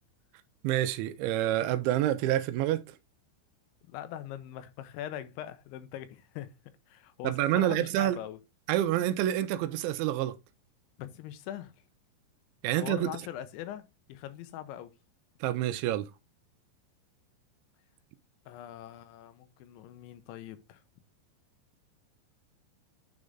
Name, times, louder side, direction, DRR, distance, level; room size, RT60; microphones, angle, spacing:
voice 1, 0.6-2.8 7.2-8.2 8.7-10.4 12.6-13.1 15.4-16.1, right 13 dB, 85° right, 2.9 m, -27 dB
voice 2, 3.9-6.5 6.9-8.4 11.0-11.7 12.7-14.9 18.5-20.8, left 11 dB, 85° left, 3.0 m, -42 dB
9.6 x 3.9 x 3.6 m
omnidirectional pair, 5.3 m